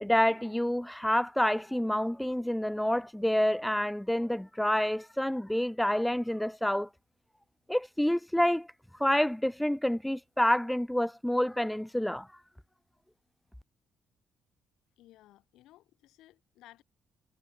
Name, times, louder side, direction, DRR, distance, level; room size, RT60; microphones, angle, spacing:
voice 1, 0.0-6.9 7.7-8.7 9.0-12.3, left 1 dB, 5° left, 0.3 m, -28 dB
voice 2, 15.0-16.8, left 15 dB, 90° left, 4.4 m, -58 dB
cardioid pair, 90°, 0 cm